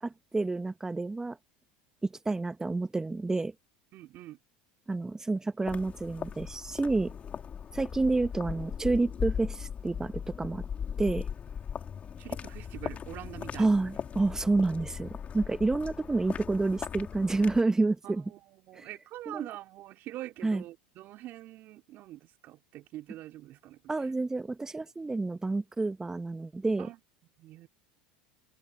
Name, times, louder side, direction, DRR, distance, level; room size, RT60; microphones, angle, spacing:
voice 1, 0.0-1.4 2.0-3.5 4.9-7.1 7.7-10.6 11.0-11.3 13.6-18.3 18.7-18.9 19.3-19.5 20.4-20.6 23.9-26.9, right 3 dB, 15° right, 1.5 m, -29 dB
voice 2, 3.9-4.4 12.2-13.7 18.0-24.1 26.8-27.0 27.4-27.7, right 15 dB, 50° right, 3.0 m, -44 dB
sound 1, 5.6-17.6, left 7 dB, 35° left, 3.8 m, -38 dB
hypercardioid pair, 85°, 4 cm